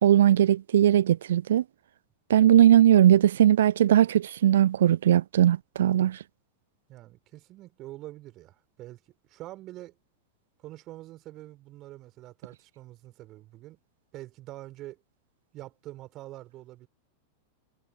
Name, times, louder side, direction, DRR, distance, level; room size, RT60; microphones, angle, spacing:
voice 1, 0.0-1.6 2.3-6.2, right 11 dB, 60° right, 0.3 m, -19 dB
voice 2, 6.9-9.0 9.3-10.0 10.6-13.8 14.1-15.0 15.5-16.9, right 16 dB, 35° right, 3.7 m, -45 dB
figure-of-eight pair, 90°, 0 cm